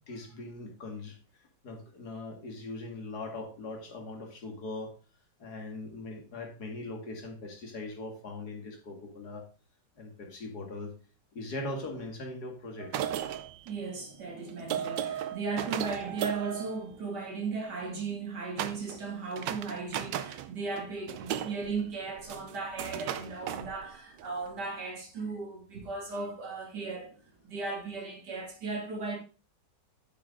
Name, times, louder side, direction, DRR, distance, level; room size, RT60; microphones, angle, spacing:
voice 1, 0.1-1.2 1.6-4.9 5.4-9.4 10.0-10.9 11.3-12.9, left 2 dB, 60° left, 2.6 m, -40 dB
sound 1, 12.8-17.5 18.6-19.0 19.3-20.5 20.8-24.3, right 10 dB, 80° right, 1.4 m, -36 dB
voice 2, 13.6-29.2, right 4 dB, 65° right, 3.2 m, -36 dB
9.4 x 7.8 x 3.8 m
omnidirectional pair, 1.9 m